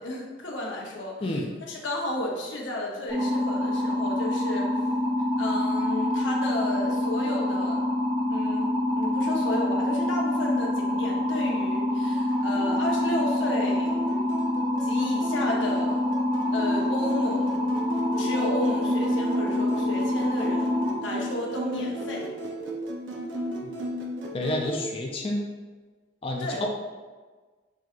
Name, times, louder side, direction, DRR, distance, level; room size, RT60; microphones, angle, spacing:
voice 1, 0.0-4.7 5.4-7.8 8.3-8.7 9.0-14.0 14.8-16.0 16.5-17.7 18.2-20.7 21.0-22.3 26.4-26.6, left 1 dB, 80° left, -1 dB, 0.7 m, -32 dB
sound 1, 3.1-20.9, left 1 dB, 30° right, 0.9 m, -26 dB
sound 2, 12.3-24.8, equal, 80° right, 0.6 m, -35 dB
voice 2, 24.3-25.5 26.2-26.7, left 1 dB, 30° left, 0 dB, 0.4 m, -29 dB
6.1 x 2.7 x 2.4 m, 1.3 s
head